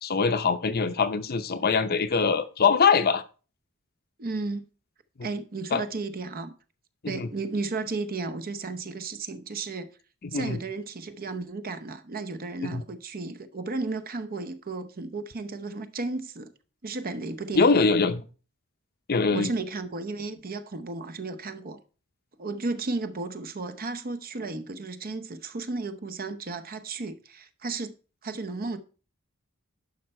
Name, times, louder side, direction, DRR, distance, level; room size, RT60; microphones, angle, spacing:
voice 1, 0.0-3.2 5.7-5.8 7.0-7.3 10.3-10.6 12.6-12.8 17.5-18.2 19.1-19.5, left 5 dB, 45° left, 0.7 m, -23 dB
voice 2, 4.2-4.7 5.2-6.5 7.1-9.9 10.3-16.5 16.8-17.7 19.3-21.8 22.4-27.9 28.2-28.8, right 3 dB, 45° right, 0.8 m, -34 dB
11.0 x 5.5 x 4.3 m
head